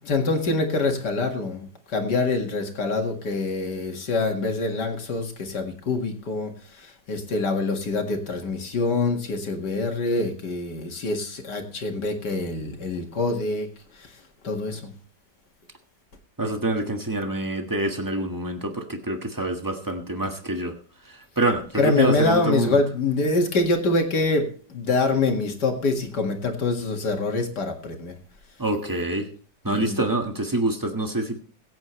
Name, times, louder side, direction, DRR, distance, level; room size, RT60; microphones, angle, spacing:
voice 1, 0.0-13.7 14.0-14.1 14.4-14.9 21.8-28.1 29.7-30.0, left 3 dB, 60° left, 3 dB, 2.5 m, -25 dB
voice 2, 16.4-20.7 21.0-22.8 28.6-29.3 29.6-31.4, right 1 dB, 10° right, 4 dB, 1.4 m, -26 dB
21.5 x 8.8 x 3.2 m, 0.43 s
omnidirectional pair, 2.0 m